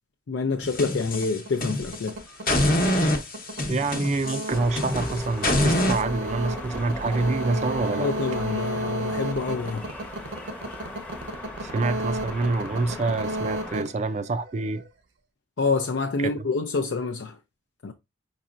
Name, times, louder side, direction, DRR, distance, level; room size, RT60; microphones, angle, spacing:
voice 1, 0.3-2.1 8.0-9.8 15.6-17.3 17.8-17.9, left 4 dB, 75° left, 0.5 m, -27 dB
sound 1, 0.6-2.1 2.5-6.0, left 1 dB, 45° left, 0.9 m, -25 dB
sound 2, 1.0-14.9, right 1 dB, 80° right, 0.8 m, -33 dB
voice 2, 3.7-8.1 11.6-14.8 16.2-16.5, right 3 dB, 35° right, 0.4 m, -27 dB
sound 3, 4.5-13.8, left 1 dB, 10° left, 0.8 m, -38 dB
5.2 x 4.2 x 2.4 m
head